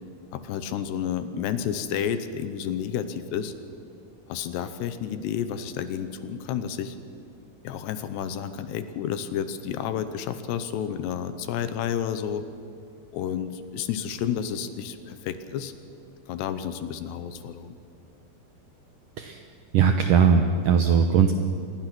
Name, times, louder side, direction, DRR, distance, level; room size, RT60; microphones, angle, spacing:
voice 1, 0.3-3.5 4.3-7.0 7.6-12.4 13.1-15.8 16.3-17.8, left 8 dB, 75° left, 11 dB, 3.0 m, -31 dB
voice 2, 19.7-21.3, right 6 dB, 80° right, 6 dB, 1.9 m, -19 dB
26.5 x 21.5 x 6.2 m, 2.5 s
omnidirectional pair, 5.1 m